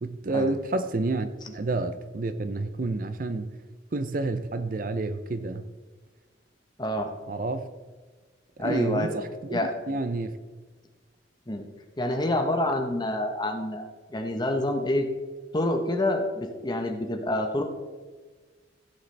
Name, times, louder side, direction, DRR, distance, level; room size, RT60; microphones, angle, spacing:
voice 1, 0.0-3.5 3.9-5.7 7.3-7.7 8.6-10.4, right 2 dB, 45° right, 0.5 m, -29 dB
voice 2, 6.8-7.1 8.6-9.1 9.5-9.7 11.5-11.7 12.0-15.1 15.5-17.6, left 1 dB, 20° left, 1.0 m, -27 dB
15.0 x 8.1 x 3.3 m
head